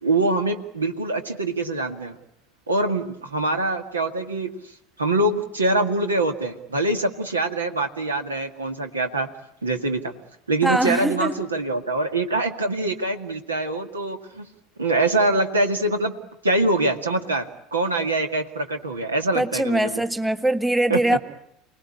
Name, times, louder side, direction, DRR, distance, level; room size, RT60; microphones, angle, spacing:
voice 1, 0.0-2.2 2.7-4.5 5.0-9.3 9.6-10.1 10.5-14.5 14.8-16.1 16.4-20.0 20.9-21.2, right 2 dB, 80° right, 6 dB, 2.0 m, -24 dB
voice 2, 10.6-11.3 19.3-21.2, right 1 dB, 5° right, 10 dB, 1.6 m, -22 dB
29.0 x 19.5 x 10.0 m, 0.78 s
figure-of-eight pair, 70°, 0 cm